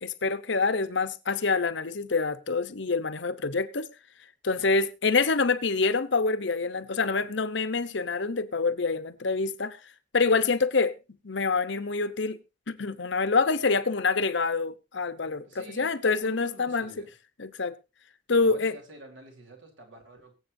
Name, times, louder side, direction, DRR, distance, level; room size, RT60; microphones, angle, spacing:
voice 1, 0.0-3.9 4.4-9.8 10.1-10.9 11.2-12.4 12.7-16.9 17.4-17.7 18.3-18.7, left 4 dB, 60° left, 0.9 m, -26 dB
voice 2, 4.5-4.8 15.4-17.1 18.4-20.4, right 2 dB, 70° right, 4.0 m, -48 dB
23.0 x 8.0 x 2.7 m
head